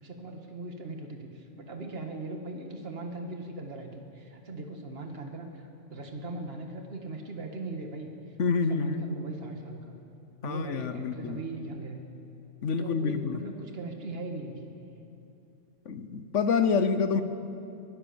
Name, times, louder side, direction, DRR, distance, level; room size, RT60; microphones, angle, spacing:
voice 1, 0.0-8.1 8.5-9.9 10.4-12.0 12.8-14.7, right 2 dB, 55° right, 3 dB, 2.0 m, -39 dB
voice 2, 8.4-9.0 10.4-11.4 12.6-13.4 15.9-17.2, left 5 dB, 80° left, 10 dB, 1.3 m, -27 dB
22.5 x 16.5 x 7.1 m, 2.7 s
omnidirectional pair, 1.2 m